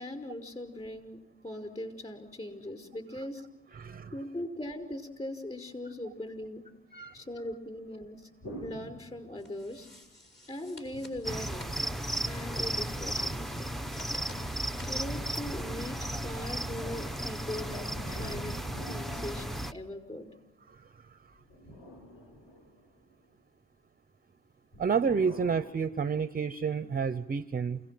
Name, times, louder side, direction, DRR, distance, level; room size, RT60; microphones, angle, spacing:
voice 1, 0.0-3.5 4.1-6.7 7.1-8.3 8.6-9.9 10.5-12.0 12.2-13.8 14.9-18.6 18.9-20.4, left 1 dB, 20° left, 5 dB, 5.2 m, -40 dB
voice 2, 3.7-4.1 6.9-7.2 20.7-20.8 21.1-21.2 24.8-27.8, right 6 dB, 30° right, 13 dB, 0.8 m, -30 dB
sound 1, 8.4-9.8 10.9-12.4 14.1-16.2 17.7-20.2 21.3-23.2 24.7-25.7, equal, 55° left, 7.8 m, -48 dB
sound 2, 9.4-15.2, left 2 dB, 40° left, 6.7 m, -53 dB
sound 3, 11.2-19.7, right 1 dB, ahead, 0.8 m, -35 dB
29.0 x 18.0 x 7.8 m, 0.95 s
cardioid pair, 90°, 30 cm